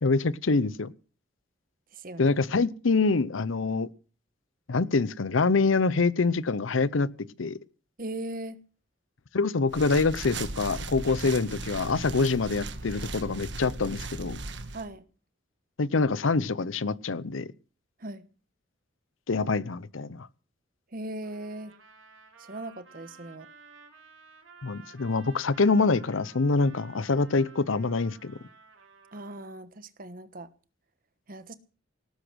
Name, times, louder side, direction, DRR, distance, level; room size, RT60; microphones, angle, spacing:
voice 1, 0.0-0.9 2.2-3.9 4.7-7.1 7.4-7.6 9.3-14.4 15.8-17.5 19.3-20.3 24.6-28.4, left 3 dB, 85° left, 0.7 m, -25 dB
voice 2, 1.9-2.3 8.0-8.6 14.7-15.0 18.0-18.2 20.9-21.7 22.4-23.5 29.1-30.5 31.3-31.5, right 1 dB, 45° right, 1.2 m, -39 dB
sound 1, 9.7-14.9, right 3 dB, 60° right, 1.6 m, -37 dB
Trumpet, 21.2-29.5, right 5 dB, 90° right, 4.0 m, -54 dB
18.5 x 10.0 x 6.3 m
head